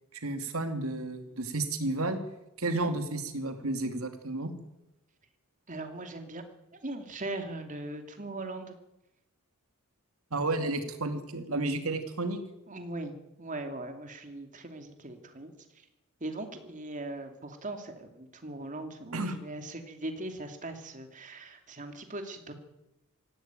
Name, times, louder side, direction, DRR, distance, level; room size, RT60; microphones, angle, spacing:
voice 1, 0.1-2.2 2.6-4.5 10.3-12.4 19.1-19.3, right 2 dB, 80° right, 8 dB, 2.6 m, -32 dB
voice 2, 5.7-6.4 6.7-8.8 12.7-15.9 16.2-22.5, right 2 dB, 35° right, 6 dB, 2.7 m, -40 dB
17.5 x 16.0 x 9.1 m, 0.89 s
head